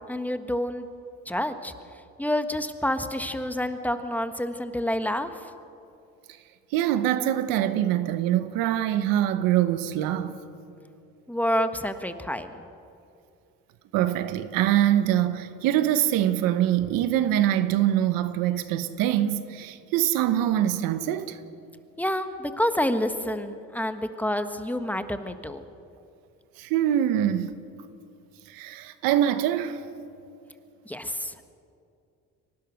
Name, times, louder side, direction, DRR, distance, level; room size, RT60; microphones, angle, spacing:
voice 1, 0.1-0.9 1.2-1.7 2.2-5.5 11.3-12.7 22.0-25.6 30.8-31.5, left 1 dB, 5° left, 1.4 m, -28 dB
voice 2, 6.7-10.4 11.5-11.7 13.9-21.4 26.6-27.6 28.5-29.8, right 11 dB, 85° right, 1.1 m, -24 dB
24.0 x 18.5 x 6.5 m
supercardioid pair, 80°, 34 cm